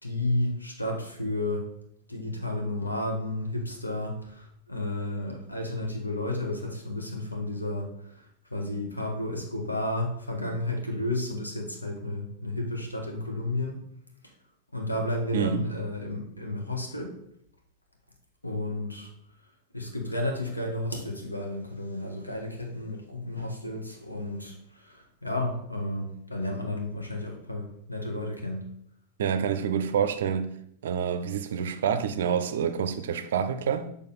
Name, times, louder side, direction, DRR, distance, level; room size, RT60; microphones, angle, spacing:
voice 1, 0.0-1.7 2.1-8.2 8.5-13.8 14.7-17.2 18.4-19.1 19.7-28.7, left 1 dB, 85° left, 1.1 m, -32 dB
voice 2, 15.3-15.7 29.2-30.5 30.8-33.9, right 7 dB, 60° right, 0.4 m, -27 dB
6.6 x 3.5 x 4.1 m
figure-of-eight pair, 90°, 0 cm